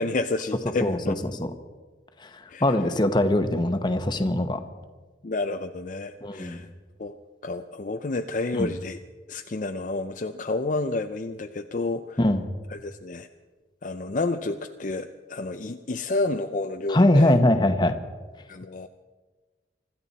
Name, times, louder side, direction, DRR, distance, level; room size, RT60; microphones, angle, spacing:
voice 1, 0.0-1.1 2.5-2.6 5.2-6.7 7.0-7.2 7.4-9.0 9.3-12.2 12.7-13.3 13.8-17.4 18.5-18.9, left 2 dB, 45° left, 6 dB, 0.5 m, -30 dB
voice 2, 0.8-1.5 2.2-4.6 6.2-6.7 8.5-8.7 12.2-12.4 16.9-17.9, left 1 dB, 25° left, 7 dB, 1.0 m, -22 dB
25.5 x 12.5 x 4.2 m, 1.3 s
head